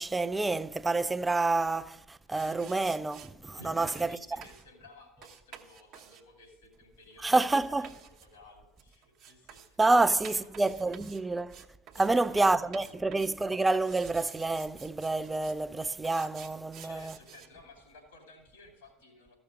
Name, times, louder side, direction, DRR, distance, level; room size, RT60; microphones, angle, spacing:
voice 1, 0.0-4.2 7.2-7.9 9.8-11.6 12.0-17.1, right 3 dB, 15° right, 0.4 m, -28 dB
sound 1, 2.3-3.3 3.9-4.1 4.4-4.7 5.2-12.1 12.4-13.4 13.7-15.6 16.0-17.5, right 9 dB, 55° right, 0.9 m, -51 dB
voice 2, 3.6-10.5 11.9-13.0 16.8-19.4, left 2 dB, 80° left, 2.9 m, -54 dB
14.0 x 6.1 x 5.1 m
figure-of-eight pair, 65°, 0 cm